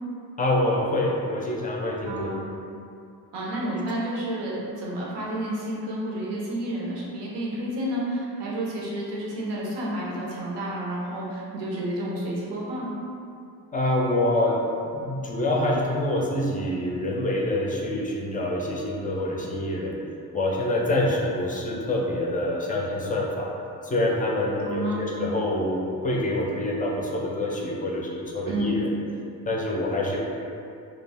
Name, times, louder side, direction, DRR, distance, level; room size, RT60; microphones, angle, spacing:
voice 1, 0.4-2.3 3.7-3.8 13.7-14.6 14.8-20.0 20.3-23.5 23.8-28.9 29.5-30.2, left 1 dB, 20° left, -2 dB, 0.4 m, -26 dB
voice 2, 2.0-2.5 3.3-12.9 24.6-25.1 28.5-28.8, right 1 dB, 85° right, -5 dB, 0.7 m, -30 dB
2.3 x 2.1 x 3.4 m, 2.5 s
cardioid pair, 85°, 41 cm